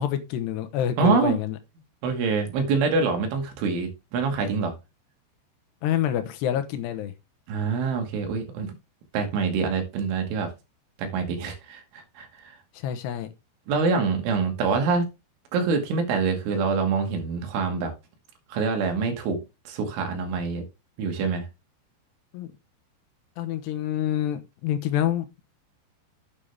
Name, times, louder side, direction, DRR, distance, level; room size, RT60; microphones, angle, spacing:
voice 1, 0.0-1.6 5.8-7.1 12.8-13.3 22.3-22.5 23.4-25.3, left 11 dB, 70° left, 3.0 m, -27 dB
voice 2, 1.0-1.4 2.0-4.7 7.5-8.7 9.1-10.5 11.0-11.8 12.2-12.5 13.7-15.0 15.5-17.9 18.5-20.6 21.0-21.5, right 4 dB, 90° right, 4.6 m, -25 dB
9.3 x 8.8 x 3.4 m
omnidirectional pair, 5.3 m